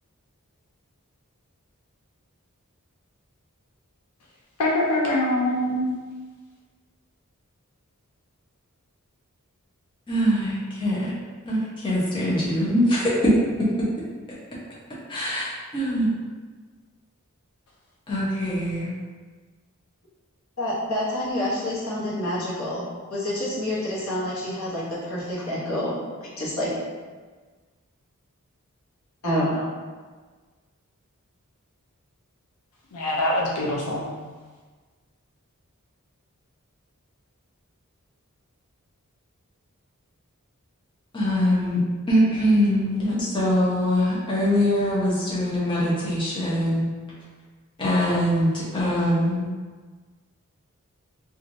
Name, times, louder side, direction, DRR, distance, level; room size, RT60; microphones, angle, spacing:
voice 1, 4.6-5.9 32.9-34.0, left 1 dB, 90° left, -3 dB, 0.5 m, -23 dB
voice 2, 10.1-11.1 11.4-13.3 15.1-15.5 15.7-16.1 18.1-18.9 41.1-46.9 47.8-49.5, equal, 20° left, -8 dB, 0.7 m, -23 dB
voice 3, 20.6-25.9 26.2-26.7 29.2-29.7, left 1 dB, 70° left, -7 dB, 0.9 m, -28 dB
3.0 x 2.4 x 2.6 m, 1.4 s
head